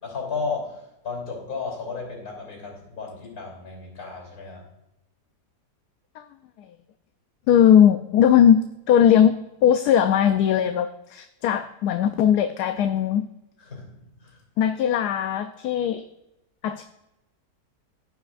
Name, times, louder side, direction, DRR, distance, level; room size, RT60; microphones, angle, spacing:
voice 1, 0.0-4.7 13.6-14.4, left 4 dB, 60° left, 0 dB, 3.8 m, -34 dB
voice 2, 7.5-9.3 9.6-13.3 14.6-16.0 16.6-16.8, left 9 dB, 75° left, 7 dB, 1.1 m, -19 dB
15.5 x 5.9 x 2.5 m, 0.92 s
omnidirectional pair, 1.7 m